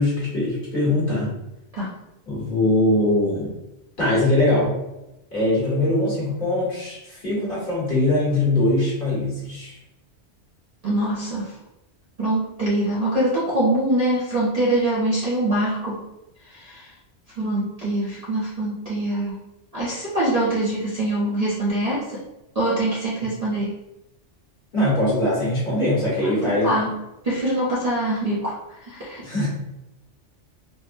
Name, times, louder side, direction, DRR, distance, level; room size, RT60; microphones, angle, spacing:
voice 1, 0.0-1.3 2.3-3.5 4.0-4.7 5.3-9.8 24.7-26.7 29.2-29.5, left 1 dB, 45° left, -7 dB, 1.3 m, -21 dB
voice 2, 10.8-11.5 12.2-16.0 16.5-16.9 17.4-19.3 19.7-22.0 22.5-23.7 26.3-26.9 27.2-28.6 28.9-29.5, right 1 dB, 40° right, -8 dB, 0.6 m, -24 dB
3.6 x 2.0 x 2.5 m, 0.93 s
omnidirectional pair, 1.2 m